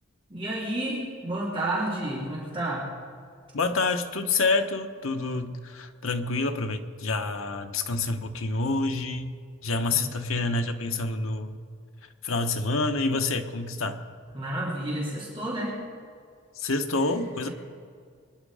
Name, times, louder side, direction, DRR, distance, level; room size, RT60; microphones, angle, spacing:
voice 1, 0.3-2.9 9.9-10.2 13.8-13.9 14.3-15.8, right 1 dB, 25° right, -6 dB, 3.4 m, -31 dB
voice 2, 3.5-9.3 9.6-11.6 12.2-14.0 16.5-17.5, left 3 dB, 90° left, 6 dB, 1.1 m, -27 dB
24.5 x 10.5 x 5.0 m, 2.2 s
head